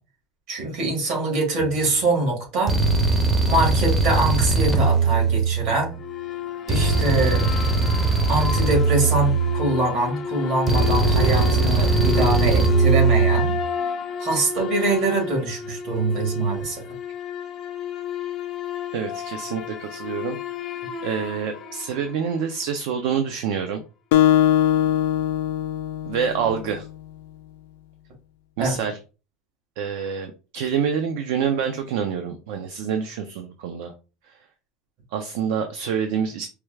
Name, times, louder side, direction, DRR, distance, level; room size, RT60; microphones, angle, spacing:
voice 1, 0.5-2.7 3.5-6.0 6.7-7.5 8.3-13.5 14.2-16.8 28.6-28.8, right 2 dB, 55° right, 1 dB, 1.8 m, -24 dB
sound 1, 1.6-1.9 2.7-5.9 6.7-9.9 10.7-13.6, right 4 dB, 15° right, 0.6 m, -20 dB
sound 2, 5.9-22.5, left 5 dB, 30° left, 0.5 m, -31 dB
voice 2, 18.9-20.4 21.0-23.8 26.0-26.9 28.6-29.0 29.8-33.9 35.1-36.5, right 7 dB, 70° right, 7 dB, 0.5 m, -27 dB
Acoustic guitar, 24.1-26.9, left 11 dB, 90° left, 0.4 m, -21 dB
4.5 x 2.3 x 3.2 m, 0.33 s
cardioid pair, 160°, 0 cm